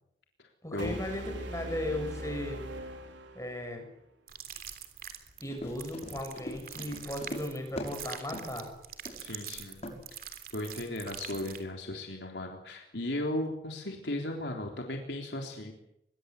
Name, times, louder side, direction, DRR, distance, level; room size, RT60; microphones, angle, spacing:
voice 1, 0.6-2.6 3.3-3.9 5.4-8.7, left 1 dB, 15° left, 4 dB, 7.0 m, -36 dB
sound 1, 0.8-3.8, right 1 dB, 85° right, 3.9 m, -41 dB
sound 2, 4.3-11.6, right 9 dB, 50° right, 3.4 m, -44 dB
Run, 5.4-8.0 8.3-8.6 9.1-9.3 9.8-10.0, equal, 35° left, 6.0 m, -41 dB
voice 2, 9.2-9.8 10.5-15.7, left 1 dB, 70° left, 2 dB, 3.6 m, -36 dB
24.5 x 22.5 x 8.3 m, 0.80 s
head